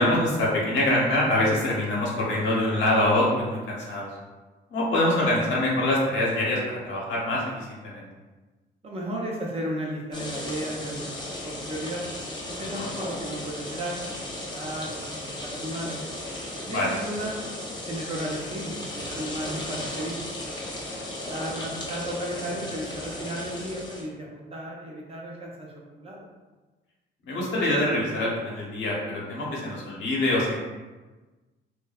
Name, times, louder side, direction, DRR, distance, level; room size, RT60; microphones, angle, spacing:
voice 1, 0.0-4.1 4.7-8.1 12.7-12.9 16.7-16.9 27.2-30.6, left 1 dB, 70° left, -4 dB, 0.8 m, -25 dB
voice 2, 8.8-12.0 12.5-16.0 16.6-17.4 17.9-20.2 21.1-26.2, right 1 dB, 30° right, -2 dB, 0.5 m, -34 dB
sound 1, 10.1-24.0, left 1 dB, 20° left, 0.6 m, -35 dB
2.6 x 2.2 x 2.3 m, 1.2 s
cardioid pair, 90°, 20 cm